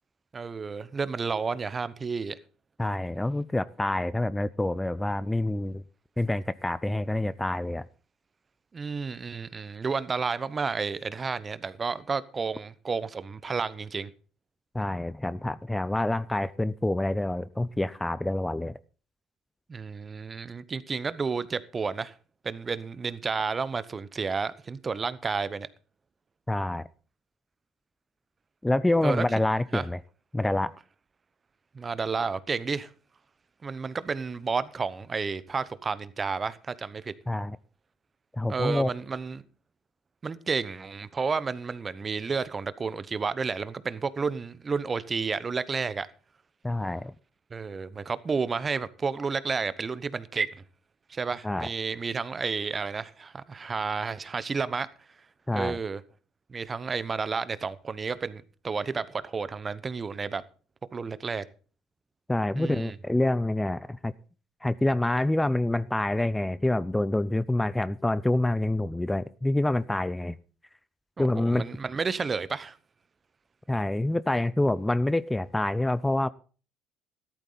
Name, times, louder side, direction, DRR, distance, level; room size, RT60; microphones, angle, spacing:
voice 1, 0.3-2.4 8.7-14.1 19.7-22.1 22.4-25.7 29.0-29.3 29.7-29.8 31.7-32.9 33.6-37.1 38.5-39.4 40.2-46.1 47.5-50.5 51.1-54.9 55.5-56.0 56.5-60.4 60.9-61.4 62.6-62.9 71.2-72.8, right 5 dB, 30° right, 1.0 m, -31 dB
voice 2, 2.8-5.8 6.2-7.8 14.7-18.7 26.5-26.9 28.6-30.0 30.3-30.8 37.3-37.6 38.3-38.9 46.6-47.1 51.4-51.7 55.5-55.8 62.3-64.1 64.6-70.4 71.2-71.7 73.7-76.3, left 1 dB, 10° left, 0.5 m, -27 dB
13.5 x 12.0 x 4.0 m
hypercardioid pair, 65°, 0 cm